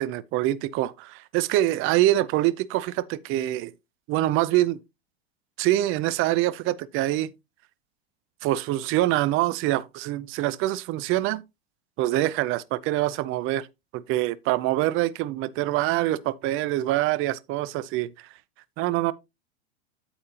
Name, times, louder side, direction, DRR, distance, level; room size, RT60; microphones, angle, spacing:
voice 1, 0.0-3.7 4.1-4.8 5.6-7.3 8.4-11.4 12.0-13.7 13.9-18.3 18.8-19.1, right 15 dB, 40° right, 0.6 m, -25 dB
8.8 x 8.6 x 2.8 m
hypercardioid pair, 110°, 34 cm